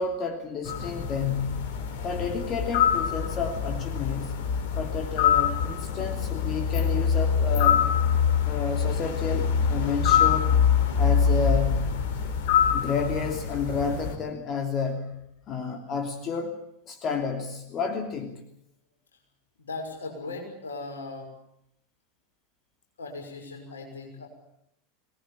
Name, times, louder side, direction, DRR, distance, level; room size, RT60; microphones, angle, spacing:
voice 1, 0.0-1.7 2.0-4.4 4.8-7.8 8.5-10.6 11.0-12.0 12.7-15.2 15.5-16.5 16.9-18.4, left 5 dB, 35° left, 4 dB, 2.9 m, -31 dB
sound 1, 0.6-14.2, left 7 dB, 55° left, 3.3 m, -25 dB
voice 2, 19.6-21.3 23.0-24.3, left 3 dB, 75° left, 2 dB, 5.8 m, -38 dB
23.5 x 19.5 x 8.8 m, 0.76 s
figure-of-eight pair, 85°, 0 cm